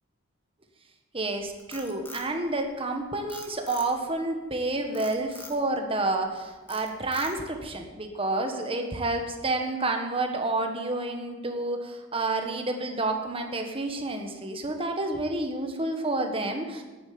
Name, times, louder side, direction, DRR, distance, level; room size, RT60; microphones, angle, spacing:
voice 1, 1.1-16.8, right 2 dB, 25° right, 4 dB, 1.4 m, -29 dB
Frog, 1.4-2.9 3.3-4.2 4.9-5.6 6.1-6.3 6.7-7.6, left 2 dB, 10° left, 1.6 m, -44 dB
11.0 x 9.7 x 8.7 m, 1.3 s
head